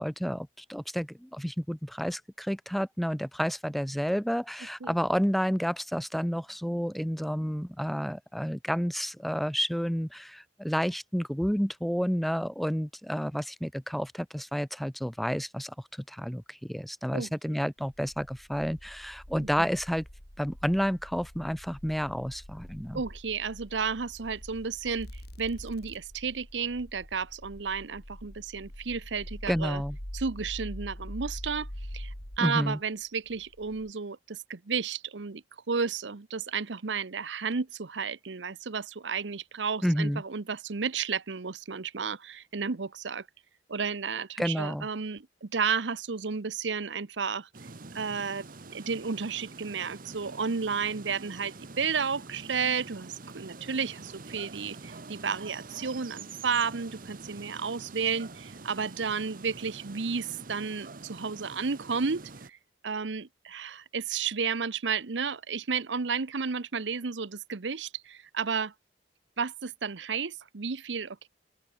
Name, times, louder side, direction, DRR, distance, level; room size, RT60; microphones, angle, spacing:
voice 1, 0.0-15.7 16.1-20.1 20.4-23.0 29.5-30.0 32.4-32.8 39.8-40.2 44.4-44.9, equal, ahead, 0.5 m, -30 dB
sound 1, 17.8-32.4 33.3-33.9, equal, 60° left, 6.2 m, -44 dB
voice 2, 22.9-25.1 25.4-29.8 30.1-31.7 31.9-43.2 43.7-47.5 47.9-62.6 62.8-68.7 69.4-71.3, right 5 dB, 85° right, 0.9 m, -32 dB
sound 2, 47.5-62.5, right 3 dB, 50° right, 1.3 m, -46 dB
open air
head